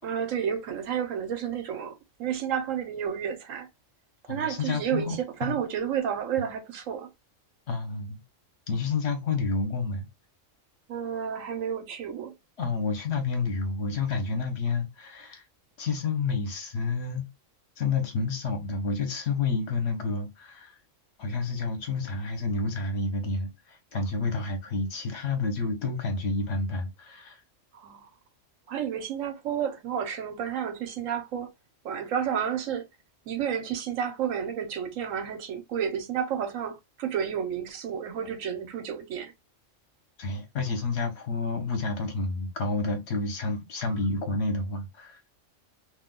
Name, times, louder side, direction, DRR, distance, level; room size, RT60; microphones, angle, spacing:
voice 1, 0.0-3.7 4.3-7.1 10.9-12.3 27.7-28.1 28.7-31.5 31.8-32.9 33.3-39.3 43.8-44.0, right 8 dB, 85° right, 1.1 m, -31 dB
voice 2, 4.3-5.5 7.7-8.2 8.7-10.1 12.6-15.4 15.8-17.3 17.8-20.8 21.2-27.4 40.2-45.2, left 3 dB, 60° left, 1.0 m, -29 dB
2.6 x 2.2 x 3.6 m
omnidirectional pair, 1.3 m